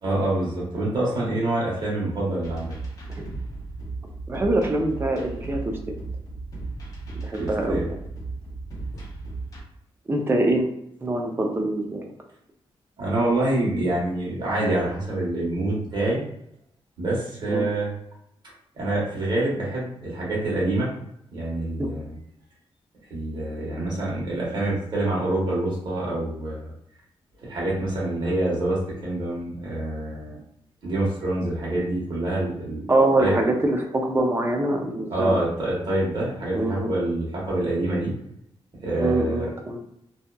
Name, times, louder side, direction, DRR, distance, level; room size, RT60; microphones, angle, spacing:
voice 1, 0.0-2.7 7.4-7.9 13.0-16.2 17.0-17.9 18.7-20.9 21.3-22.1 23.1-26.6 27.4-30.4 30.8-32.8 33.2-33.4 35.1-38.1 38.8-39.5, right 1 dB, 50° right, -6 dB, 1.2 m, -26 dB
sound 1, 2.4-9.6, right 3 dB, 35° left, 0.7 m, -35 dB
voice 2, 4.3-5.7 7.2-8.0 10.1-10.7 11.0-12.1 17.5-17.7 21.8-21.9 32.9-35.4 36.5-36.9 39.0-39.8, right 2 dB, 25° right, 2 dB, 0.4 m, -24 dB
2.7 x 2.4 x 2.2 m, 0.76 s
wide cardioid pair, 160°, 10 cm